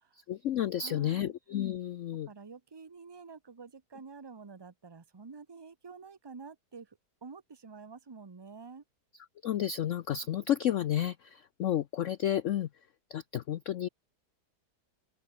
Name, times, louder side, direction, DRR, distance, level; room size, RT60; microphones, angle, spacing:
voice 1, 0.3-2.3 9.4-12.7 13.1-13.9, left 11 dB, 65° left, 0.8 m, -31 dB
voice 2, 0.8-1.3 2.3-8.8, right 5 dB, 25° right, 0.5 m, -49 dB
open air
omnidirectional pair, 1.9 m